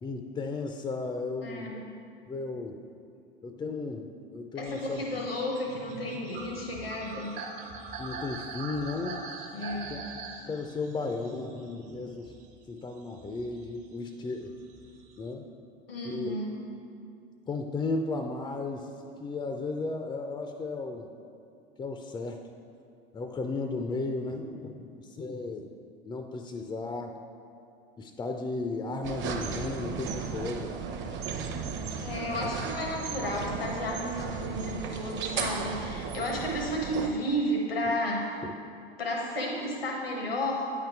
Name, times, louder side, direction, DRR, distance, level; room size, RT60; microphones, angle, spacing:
voice 1, 0.0-1.9 2.3-2.8 3.4-5.0 8.0-9.2 9.9-10.1 10.5-12.3 12.7-14.5 15.2-15.5 16.0-16.4 17.5-18.9 19.2-21.1 21.8-22.5 23.1-25.7 26.0-27.1 28.0-30.7 38.4-38.5, left 3 dB, 15° left, 5 dB, 0.3 m, -34 dB
voice 2, 1.3-1.9 4.6-7.4 9.5-10.0 15.9-16.6 32.0-38.4 39.0-40.7, equal, 90° left, 0 dB, 1.0 m, -32 dB
sound 1, 4.7-12.7 13.1-15.3, right 4 dB, 65° right, 1.1 m, -43 dB
sound 2, 29.0-37.1, right 5 dB, 40° right, 0.7 m, -35 dB
8.9 x 3.8 x 4.5 m, 2.5 s
hypercardioid pair, 80°, 29 cm